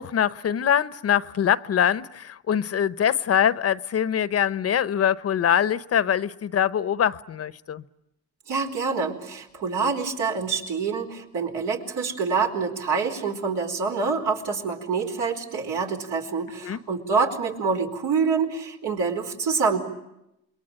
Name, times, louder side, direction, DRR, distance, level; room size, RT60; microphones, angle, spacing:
voice 1, 0.0-7.8 16.6-16.8, left 9 dB, 55° left, 0.9 m, -23 dB
voice 2, 8.5-19.8, right 5 dB, 80° right, 4.6 m, -26 dB
27.5 x 22.0 x 9.0 m
cardioid pair, 90°, 30 cm